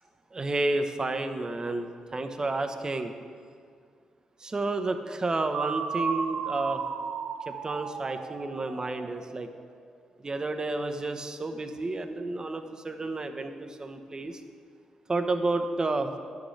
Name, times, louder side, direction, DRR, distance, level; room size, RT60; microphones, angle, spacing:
voice 1, 0.3-3.1 4.4-6.8 7.5-9.5 10.2-14.4 15.1-16.1, right 2 dB, 30° right, 7 dB, 0.8 m, -31 dB
sound 1, 5.5-9.4, right 6 dB, 70° right, 0.6 m, -34 dB
11.0 x 8.6 x 3.2 m, 2.1 s
supercardioid pair, 50°, 2 cm